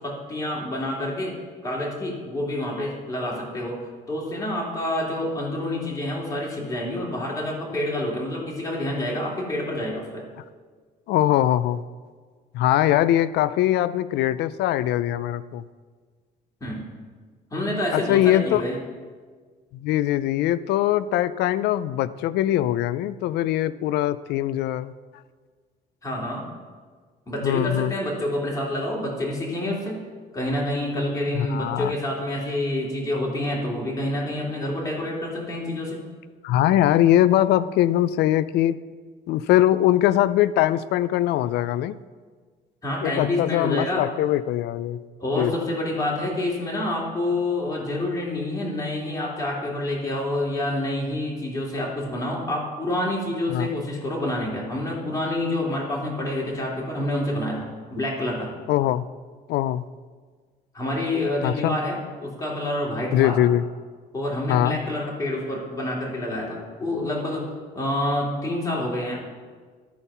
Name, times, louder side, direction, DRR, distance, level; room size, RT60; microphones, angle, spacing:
voice 1, 0.0-1.4 1.6-10.2 16.6-16.9 17.5-18.8 26.0-26.5 27.3-30.0 30.3-36.1 42.8-44.1 45.2-58.5 60.7-63.4 64.1-67.4 67.7-69.2, left 1 dB, 20° left, -3 dB, 2.8 m, -28 dB
voice 2, 11.1-11.8 12.5-15.6 17.9-18.6 19.7-24.9 27.4-27.9 31.3-31.9 36.4-38.8 39.3-42.0 43.0-45.0 45.4-45.5 53.5-53.7 58.7-59.1 59.5-59.8 61.4-61.8 63.1-63.6 64.5-64.8, left 13 dB, 80° left, 16 dB, 0.4 m, -22 dB
13.0 x 4.5 x 5.6 m, 1.5 s
cardioid pair, 110°, 17 cm